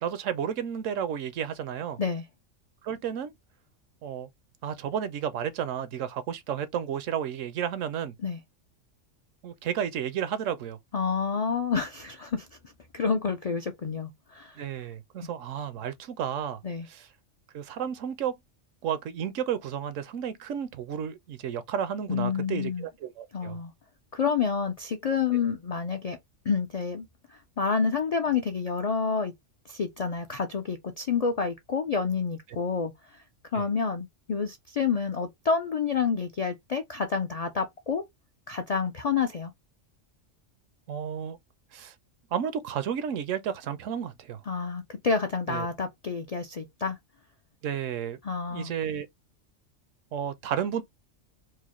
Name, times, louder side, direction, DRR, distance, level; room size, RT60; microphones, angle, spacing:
voice 1, 0.0-2.0 2.8-3.3 4.0-4.3 4.6-8.1 9.4-10.8 14.6-16.6 16.9-17.1 17.5-18.3 18.8-23.6 33.5-33.6 40.9-41.4 41.7-41.9 42.3-44.4 45.5-45.7 47.6-48.2 48.5-49.1 50.1-50.8, right 8 dB, 85° right, 1.0 m, -32 dB
voice 2, 10.9-12.5 12.9-14.6 16.6-16.9 22.1-22.9 23.3-23.7 24.1-26.2 26.5-27.1 27.6-29.3 29.7-32.9 33.5-38.0 38.5-39.5 44.5-47.0 48.2-48.7, left 5 dB, 65° left, 0.3 m, -28 dB
4.7 x 2.1 x 3.0 m
omnidirectional pair, 1.3 m